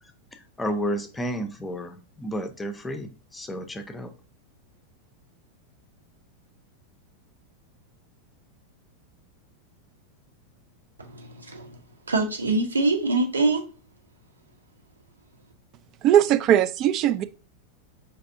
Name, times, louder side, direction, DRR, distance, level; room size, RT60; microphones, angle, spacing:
voice 1, 0.6-4.1, equal, 10° left, 0.6 m, -31 dB
voice 2, 11.0-11.8 12.1-13.6, right 3 dB, 75° right, 0.8 m, -24 dB
voice 3, 16.0-17.2, right 11 dB, 35° right, 0.3 m, -19 dB
5.3 x 3.3 x 2.6 m
figure-of-eight pair, 90°, 0 cm